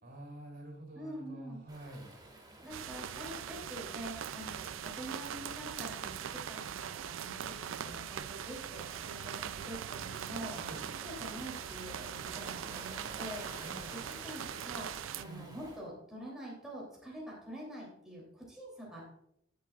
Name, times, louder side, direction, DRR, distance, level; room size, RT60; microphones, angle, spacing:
voice 1, 0.0-2.1 10.6-10.9 13.6-14.1 15.2-15.6, right 1 dB, 55° right, 1 dB, 3.6 m, -48 dB
voice 2, 0.9-1.6 2.6-10.6 11.0-13.7 13.9-19.0, right 1 dB, 5° right, -5 dB, 3.1 m, -46 dB
Waves surf, 1.7-15.8, right 1 dB, 20° right, 2.0 m, -53 dB
sound 1, 2.7-15.2, right 9 dB, 90° right, 0.4 m, -41 dB
15.5 x 7.8 x 2.5 m, 0.75 s
head